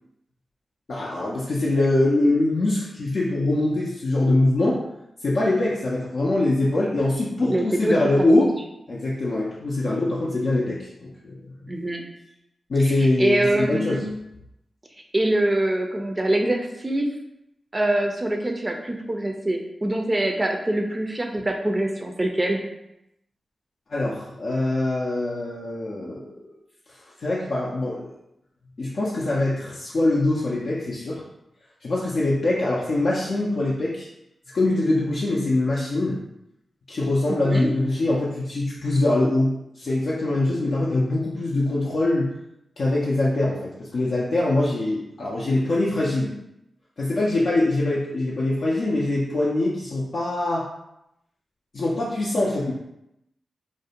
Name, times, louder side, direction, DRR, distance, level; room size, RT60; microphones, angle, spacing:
voice 1, 0.9-4.8 5.2-8.5 8.9-11.4 12.7-14.0 23.9-26.5 27.2-28.1 28.8-31.2 31.8-34.1 34.5-36.2 36.9-42.3 42.8-46.3 47.0-50.7 51.7-52.7, left 2 dB, 70° left, -5 dB, 0.4 m, -23 dB
voice 2, 7.5-8.5 11.7-12.0 12.8-14.0 15.1-17.1 17.7-22.6 37.3-37.7, right 1 dB, 30° right, 3 dB, 0.4 m, -24 dB
2.5 x 2.0 x 2.8 m, 0.83 s
cardioid pair, 40°, 0 cm